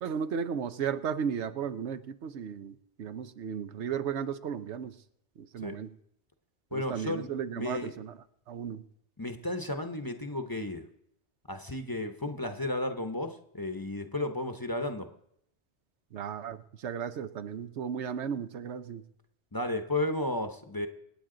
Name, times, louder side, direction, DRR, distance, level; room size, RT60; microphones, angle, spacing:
voice 1, 0.0-5.0 5.4-5.9 6.7-8.2 8.5-8.8 16.1-19.0, right 7 dB, 85° right, 11 dB, 1.0 m, -35 dB
voice 2, 6.7-7.9 9.2-10.9 11.5-15.1 19.5-20.9, left 2 dB, 20° left, 6 dB, 0.8 m, -33 dB
25.5 x 9.3 x 3.8 m, 0.75 s
omnidirectional pair, 1.1 m